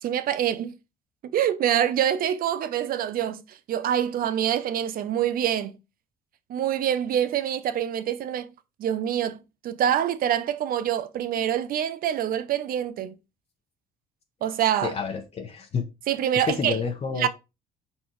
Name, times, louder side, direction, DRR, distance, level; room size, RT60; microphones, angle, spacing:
voice 1, 0.0-0.8 1.3-5.8 6.5-8.5 8.8-9.4 9.6-13.1 14.4-14.9 16.1-16.8 17.2-17.3, right 10 dB, 60° right, 0.7 m, -25 dB
voice 2, 14.8-15.8 16.3-17.3, left 6 dB, 35° left, 1.0 m, -29 dB
5.1 x 4.2 x 4.6 m
cardioid pair, 110°, 17 cm